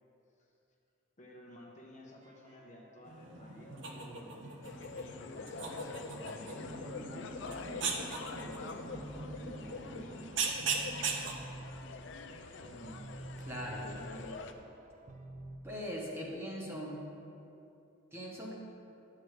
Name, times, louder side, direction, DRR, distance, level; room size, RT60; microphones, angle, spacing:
voice 1, 1.2-4.4 5.2-10.4 12.6-13.2 13.7-14.7, equal, 35° left, -1 dB, 0.8 m, -53 dB
sound 1, 2.2-3.4 3.9-5.8 6.1-8.1 8.4-15.6, right 1 dB, 35° right, 0.4 m, -51 dB
sound 2, 3.0-11.4, right 4 dB, 60° right, 0.8 m, -39 dB
sound 3, 4.6-14.5, left 4 dB, 60° left, 0.4 m, -45 dB
voice 2, 13.4-13.9 15.6-17.0 18.1-18.6, equal, 10° right, -4 dB, 1.1 m, -40 dB
10.5 x 7.6 x 3.2 m, 2.8 s
head